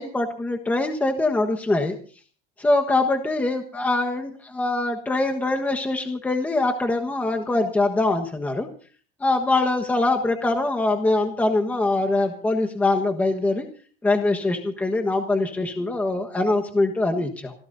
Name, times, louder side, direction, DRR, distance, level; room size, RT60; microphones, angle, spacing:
voice 1, 0.0-2.0 2.6-8.7 9.2-13.7 14.0-17.5, left 2 dB, 10° left, 3 dB, 1.3 m, -23 dB
27.5 x 15.5 x 2.7 m, 0.41 s
cardioid pair, 165°, 20 cm